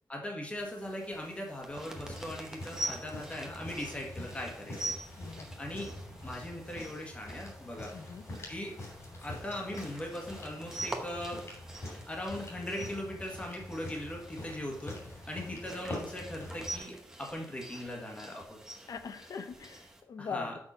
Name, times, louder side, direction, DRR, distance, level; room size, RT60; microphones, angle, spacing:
voice 1, 0.1-4.9 5.6-5.9 6.2-7.9 8.5-8.8 9.2-11.4 12.1-15.0 15.3-18.6 20.2-20.6, left 1 dB, 20° left, 0 dB, 1.7 m, -39 dB
sound 1, 0.6-20.0, right 1 dB, 10° right, 1.0 m, -45 dB
sound 2, 1.9-16.8, left 1 dB, 50° left, 2.9 m, -45 dB
voice 2, 5.2-5.5 7.9-8.2 15.4-15.6 18.9-20.6, left 5 dB, 65° left, 9 dB, 0.8 m, -41 dB
6.3 x 5.9 x 5.6 m, 0.72 s
wide cardioid pair, 180°, 6 cm